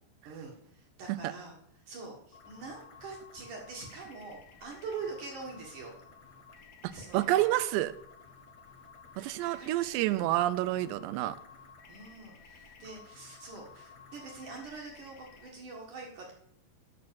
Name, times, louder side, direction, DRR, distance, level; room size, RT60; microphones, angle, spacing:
voice 1, 0.3-5.9 6.9-7.5 9.4-10.2 11.9-16.3, right 4 dB, 55° right, -1 dB, 2.7 m, -44 dB
sound 1, 2.3-15.5, left 5 dB, 80° left, 1.4 m, -54 dB
voice 2, 6.8-7.9 9.2-11.4, right 15 dB, 80° right, 15 dB, 2.7 m, -29 dB
10.5 x 6.0 x 7.0 m, 0.67 s
omnidirectional pair, 5.2 m